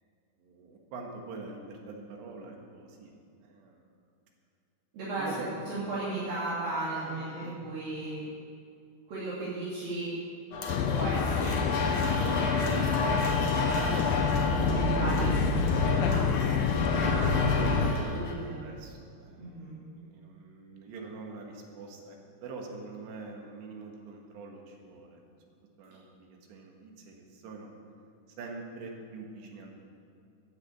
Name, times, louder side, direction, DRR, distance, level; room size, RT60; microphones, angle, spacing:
voice 1, 0.4-3.1 3.4-3.8 5.2-5.5 6.9-7.6 17.0-25.2 25.5-27.7 28.4-29.8, right 3 dB, 80° right, 1 dB, 3.8 m, -44 dB
voice 2, 4.9-8.2 9.1-10.1 10.8-13.1 13.7-16.3 16.7-17.1 17.5-18.7 19.4-19.8, right 2 dB, 60° right, -9 dB, 4.3 m, -36 dB
sound 1, 10.5-18.3, left 3 dB, 60° left, 1.7 m, -32 dB
sound 2, 10.7-17.9, left 5 dB, 90° left, 2.0 m, -27 dB
12.0 x 9.4 x 8.1 m, 2.4 s
omnidirectional pair, 4.9 m